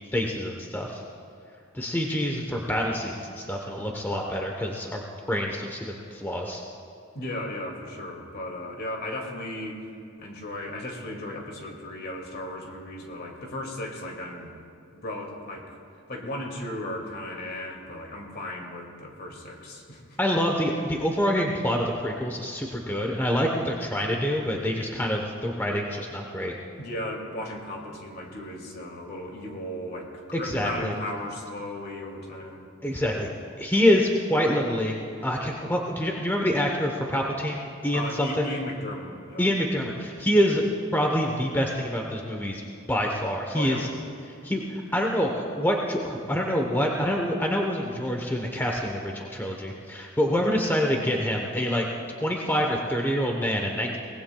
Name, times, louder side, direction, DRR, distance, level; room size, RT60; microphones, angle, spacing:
voice 1, 0.1-1.0 1.7-6.6 20.2-26.5 30.3-30.9 32.8-33.3 33.6-38.5 39.4-40.6 40.9-42.6 42.9-43.9 44.4-51.8 52.2-54.0, equal, 10° left, 0 dB, 0.9 m, -26 dB
voice 2, 7.1-9.8 10.2-14.5 14.9-15.7 16.1-20.0 26.8-32.7 37.9-39.5 43.5-43.9, left 1 dB, 50° left, 1 dB, 2.2 m, -36 dB
23.5 x 19.0 x 2.3 m, 2.6 s
head